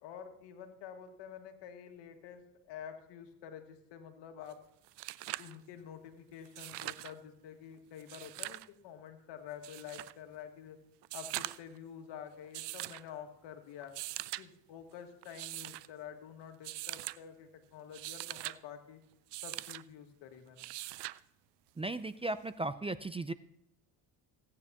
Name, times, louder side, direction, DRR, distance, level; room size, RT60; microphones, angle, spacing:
voice 1, 0.0-2.4 2.7-4.6 5.4-10.8 11.1-13.9 14.4-19.0 19.4-20.7, left 8 dB, 80° left, 5 dB, 1.8 m, -48 dB
sound 1, 4.5-4.6 4.8-5.6 6.4-7.1 8.0-8.7 9.6-10.1 11.0-11.8 12.5-13.0 13.8-14.4 15.2-15.9 16.6-17.2 17.8-18.6 19.3-19.8 20.6-21.2 22.6-22.7, right 18 dB, 75° right, 0.5 m, -42 dB
voice 2, 21.8-23.3, right 2 dB, 15° right, 13 dB, 0.4 m, -36 dB
16.5 x 9.7 x 2.9 m, 0.82 s
supercardioid pair, 85°, 42 cm